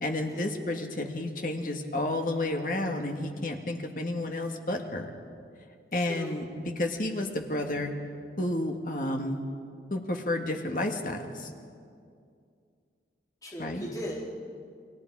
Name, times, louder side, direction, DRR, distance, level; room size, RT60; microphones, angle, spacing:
voice 1, 0.0-5.1 5.9-7.9 8.4-9.4 9.9-11.5 13.6-13.9, left 1 dB, 50° left, 3 dB, 1.9 m, -31 dB
voice 2, 5.9-6.4 13.4-14.2, equal, 20° left, -5 dB, 3.6 m, -38 dB
30.0 x 22.0 x 4.9 m, 2.3 s
head